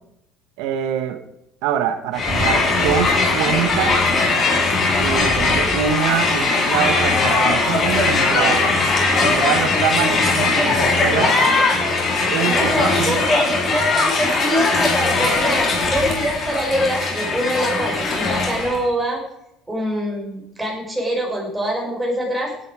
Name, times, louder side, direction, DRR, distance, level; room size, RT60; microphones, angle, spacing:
voice 1, 0.6-1.2 1.6-4.1 5.0-8.7 9.2-11.3 12.2-13.2, right 9 dB, 85° right, 8 dB, 1.4 m, -24 dB
Crowd, 2.1-18.8, left 3 dB, 35° left, 4.5 m, -19 dB
voice 2, 11.1-11.9 12.5-19.2 19.7-22.5, equal, 5° right, -1 dB, 5.7 m, -24 dB
17.0 x 11.0 x 5.0 m, 0.82 s
cardioid pair, 145°, 0 cm